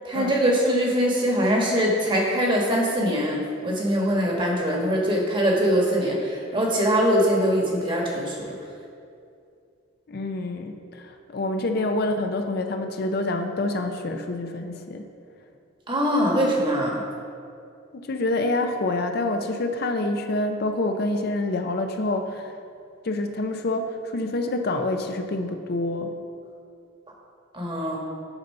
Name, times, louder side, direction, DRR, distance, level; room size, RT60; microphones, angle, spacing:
voice 1, 0.0-8.5 15.9-17.0 27.5-28.0, equal, 25° right, -1 dB, 1.3 m, -22 dB
voice 2, 10.1-15.0 17.9-22.5 23.0-26.1, left 2 dB, 55° left, 5 dB, 0.5 m, -27 dB
9.7 x 4.0 x 5.4 m, 2.4 s
head